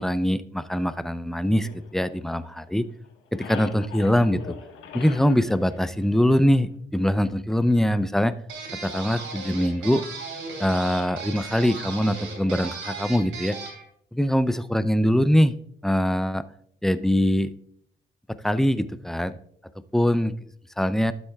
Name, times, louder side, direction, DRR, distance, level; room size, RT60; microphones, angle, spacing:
voice 1, 0.0-2.9 3.3-4.6 4.9-8.3 8.8-10.0 10.6-13.6 14.1-15.5 15.8-16.4 16.8-17.5 18.4-19.4 19.9-20.3 20.8-21.1, equal, ahead, 14 dB, 0.4 m, -23 dB
sound 1, 1.6-2.8 3.0-6.7, left 6 dB, 85° left, 1.3 m, -42 dB
sound 2, 8.5-13.8, right 4 dB, 80° right, 2.8 m, -36 dB
12.0 x 7.9 x 2.3 m, 0.66 s
cardioid pair, 90°, 20 cm